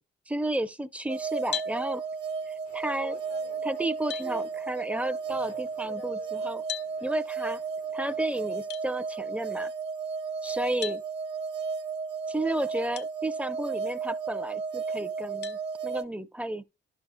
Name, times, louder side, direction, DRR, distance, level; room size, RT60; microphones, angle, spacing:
voice 1, 0.3-2.0 2.5-3.2 3.6-6.6 7.0-7.6 7.9-9.7 10.4-11.0 12.3-16.6, right 1 dB, 5° right, 0.6 m, -32 dB
sound 1, 1.1-16.0, right 5 dB, 60° right, 0.7 m, -34 dB
sound 2, 1.5-1.8 3.4-3.5 4.1-4.3 6.7-6.9 8.7-8.9 10.8-11.0 12.9-13.1 13.7-13.8 15.4-15.6, left 10 dB, 55° left, 0.7 m, -35 dB
sound 3, 2.1-8.7, left 7 dB, 85° left, 1.0 m, -52 dB
11.0 x 6.4 x 2.2 m
cardioid pair, 90°, 20 cm